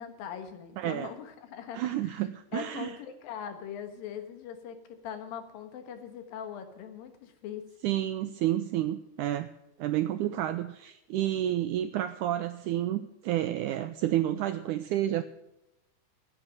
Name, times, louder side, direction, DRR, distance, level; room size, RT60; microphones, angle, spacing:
voice 1, 0.0-2.1 2.5-7.7, left 8 dB, 75° left, 8 dB, 3.1 m, -41 dB
voice 2, 0.8-1.1 1.7-3.0 7.8-9.5 9.8-15.2, right 13 dB, 85° right, 10 dB, 1.8 m, -30 dB
16.0 x 8.8 x 6.1 m, 0.91 s
omnidirectional pair, 4.2 m